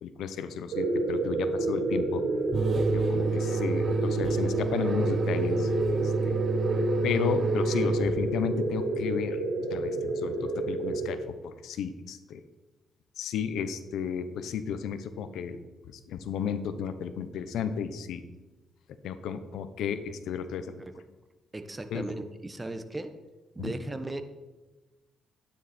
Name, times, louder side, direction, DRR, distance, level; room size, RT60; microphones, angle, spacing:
voice 1, 0.0-2.2 2.9-5.7 6.2-6.4 7.0-9.4 9.7-11.2 11.6-12.4 13.2-15.6 16.1-18.2 19.0-20.7 21.9-22.0 23.6-23.7, left 7 dB, 80° left, 11 dB, 0.9 m, -33 dB
sound 1, 0.7-11.2, right 2 dB, 80° right, 3.6 m, -29 dB
sound 2, 2.5-8.6, right 3 dB, 45° right, 0.7 m, -30 dB
voice 2, 21.5-23.1 23.5-24.2, right 2 dB, 15° right, 8 dB, 1.1 m, -37 dB
12.5 x 10.0 x 4.4 m, 1.1 s
cardioid pair, 90°, 0 cm